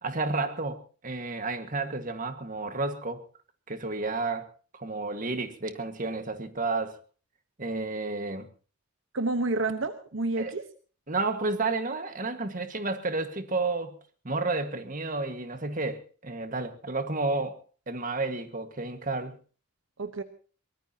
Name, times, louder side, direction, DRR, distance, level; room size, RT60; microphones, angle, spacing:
voice 1, 0.0-3.2 3.7-7.0 7.6-8.5 10.4-10.6 11.1-14.0 14.2-19.4, right 3 dB, 40° right, 8 dB, 1.7 m, -31 dB
voice 2, 9.1-10.6 20.0-20.2, right 2 dB, 65° right, 9 dB, 1.1 m, -29 dB
23.5 x 20.0 x 2.9 m, 0.38 s
head